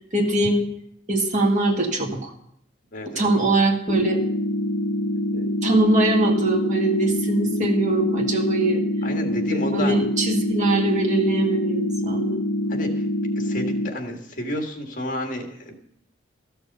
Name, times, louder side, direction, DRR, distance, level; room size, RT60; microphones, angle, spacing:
voice 1, 0.1-0.7 1.1-2.3 3.1-4.2 5.3-8.8 9.5-12.4, right 2 dB, 40° right, 2 dB, 1.8 m, -22 dB
voice 2, 2.9-3.3 9.0-9.9 12.7-12.9 13.4-15.7, left 1 dB, 45° left, 3 dB, 1.7 m, -30 dB
sound 1, 3.9-13.9, left 1 dB, 70° left, 0.8 m, -25 dB
14.0 x 6.9 x 6.6 m, 0.72 s
head